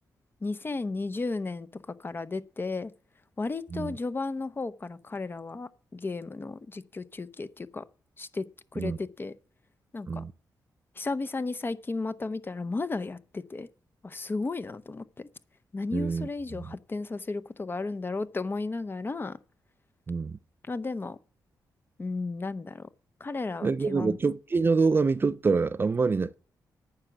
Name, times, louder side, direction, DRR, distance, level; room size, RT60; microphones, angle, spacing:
voice 1, 0.4-2.9 3.4-7.8 8.2-8.5 8.7-9.3 9.9-10.2 11.0-13.7 14.0-15.3 15.7-19.4 20.7-21.2 22.0-22.9 23.2-24.2, left 3 dB, 30° left, 0.7 m, -34 dB
voice 2, 15.9-16.7 20.1-20.4 23.6-26.3, right 4 dB, 30° right, 0.4 m, -26 dB
9.7 x 5.9 x 7.7 m
cardioid pair, 95°, 7 cm